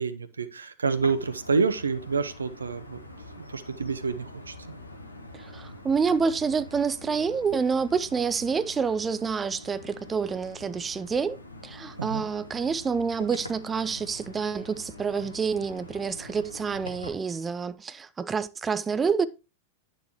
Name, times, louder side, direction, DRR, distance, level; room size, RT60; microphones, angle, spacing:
voice 1, 0.0-3.0 3.5-4.5 12.0-12.2, right 4 dB, 75° right, 0.7 m, -28 dB
sound 1, 0.9-17.1, left 1 dB, 80° left, 1.1 m, -45 dB
voice 2, 5.3-19.3, right 5 dB, 20° right, 0.5 m, -28 dB
9.2 x 6.6 x 3.0 m
figure-of-eight pair, 90°, 0 cm